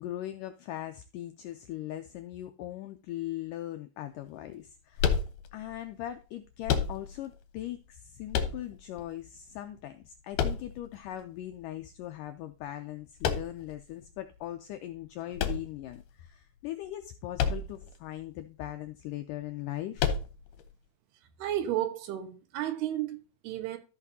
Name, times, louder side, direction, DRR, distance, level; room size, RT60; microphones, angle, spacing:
voice 1, 0.0-5.2 5.5-20.1, left 13 dB, 85° left, 1.8 m, -40 dB
sound 1, 5.0-5.8 6.6-7.3 8.3-9.0 10.3-11.1 13.2-13.8 15.3-16.2 17.3-17.9 18.2-18.3 20.0-20.6, left 7 dB, 70° left, 2.2 m, -30 dB
voice 2, 21.4-23.8, right 12 dB, 85° right, 3.2 m, -33 dB
14.5 x 5.9 x 2.8 m
omnidirectional pair, 4.5 m